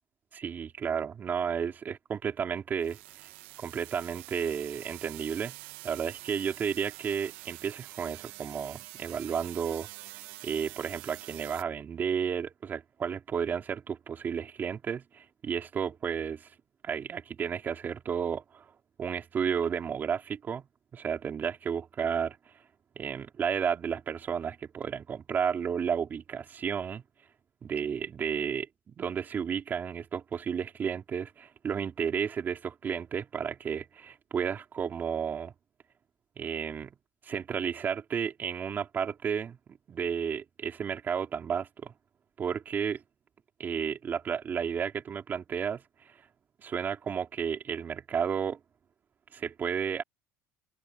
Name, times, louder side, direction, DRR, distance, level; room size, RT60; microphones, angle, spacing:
voice 1, 0.3-3.0 3.6-5.6 5.8-9.9 10.4-16.5 16.8-18.6 19.0-20.6 20.9-22.4 22.9-27.0 27.6-35.5 36.4-36.9 37.2-39.6 39.9-41.9 42.4-43.0 43.6-45.8 46.6-48.6 49.3-50.0, right 7 dB, 35° right, 3.5 m, -32 dB
sound 1, 2.8-11.6, right 20 dB, 85° right, 1.5 m, -46 dB
cardioid pair, 120°, 6 cm